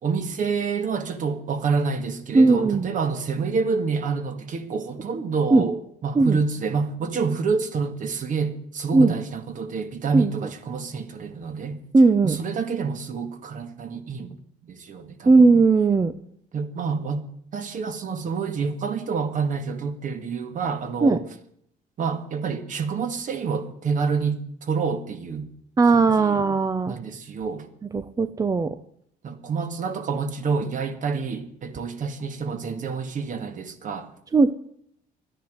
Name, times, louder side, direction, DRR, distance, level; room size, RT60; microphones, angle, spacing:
voice 1, 0.0-11.8 12.2-14.4 14.6-15.3 16.5-17.2 17.5-21.2 22.0-25.5 25.9-26.4 26.9-27.7 29.2-34.1, right 5 dB, 50° right, 1.9 m, -28 dB
voice 2, 2.3-2.9 5.5-5.6 6.2-6.4 8.9-9.1 10.1-10.3 11.9-12.4 15.3-16.1 21.0-21.2 25.8-27.0 27.9-28.8 34.3-34.5, right 3 dB, 20° right, 0.7 m, -17 dB
12.5 x 10.0 x 9.4 m
cardioid pair, 110°, 17 cm